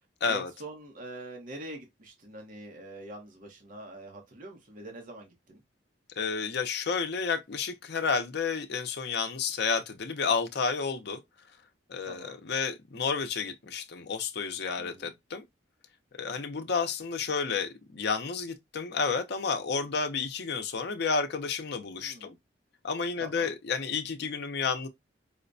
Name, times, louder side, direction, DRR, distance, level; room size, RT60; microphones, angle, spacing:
voice 1, 0.3-5.6 12.1-12.4 14.8-15.1 22.0-22.4 23.2-23.5, right 1 dB, 50° right, 0.9 m, -44 dB
voice 2, 6.2-11.2 11.9-15.4 16.2-22.3 22.8-24.9, left 5 dB, 65° left, 0.6 m, -31 dB
4.9 x 2.1 x 2.5 m
head